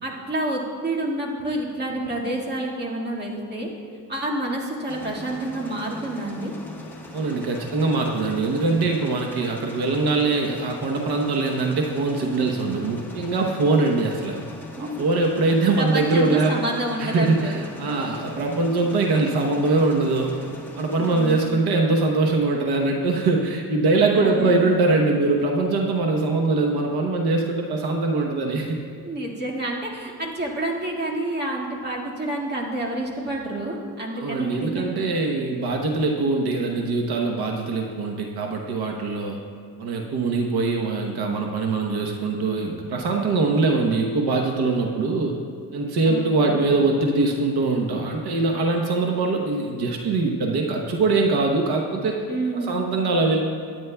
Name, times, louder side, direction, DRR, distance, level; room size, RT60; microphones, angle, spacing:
voice 1, 0.0-3.7 4.1-6.5 14.8-14.9 15.8-17.6 20.9-21.6 24.1-24.6 29.0-35.1 46.0-46.6 52.3-52.7, right 1 dB, 25° right, -3 dB, 1.9 m, -29 dB
sound 1, 4.9-21.5, left 2 dB, 5° left, 1.2 m, -40 dB
voice 2, 7.1-14.4 14.8-16.6 17.0-20.4 20.7-28.8 34.1-39.4 39.8-45.4 45.7-52.2 52.5-53.4, right 3 dB, 70° right, 1 dB, 1.0 m, -22 dB
23.5 x 9.3 x 2.3 m, 2.2 s
cardioid pair, 135°, 40 cm